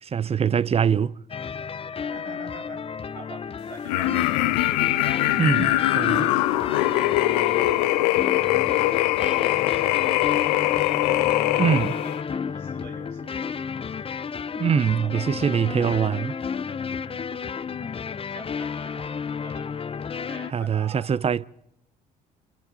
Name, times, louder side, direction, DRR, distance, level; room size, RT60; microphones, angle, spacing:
voice 1, 0.0-1.2 5.4-6.3 11.6-11.9 14.5-16.3 20.5-21.5, right 7 dB, 30° right, 0.7 m, -23 dB
sound 1, 1.3-20.5, left 6 dB, 25° left, 0.8 m, -32 dB
voice 2, 2.0-2.9 3.1-4.2 5.0-7.0 8.1-10.6 11.6-13.4 13.8-13.9 15.0-15.3 17.3-17.5 18.3-19.1 19.4-19.7 20.1-21.1, right 4 dB, 60° right, 4.7 m, -46 dB
sound 2, 3.9-12.2, left 17 dB, 75° left, 0.8 m, -22 dB
28.5 x 27.5 x 4.2 m
hypercardioid pair, 55°, 21 cm